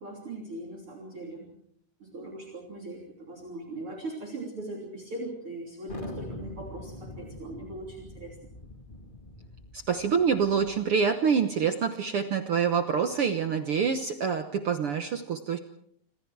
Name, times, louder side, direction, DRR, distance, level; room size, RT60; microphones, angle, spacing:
voice 1, 0.0-1.5 2.0-8.4, right 2 dB, 40° right, 0 dB, 3.9 m, -40 dB
Thunder, 5.9-11.0, left 2 dB, 20° left, 1.5 m, -44 dB
voice 2, 9.7-15.6, right 6 dB, 65° right, 7 dB, 1.4 m, -26 dB
27.0 x 26.0 x 4.7 m, 0.67 s
omnidirectional pair, 4.0 m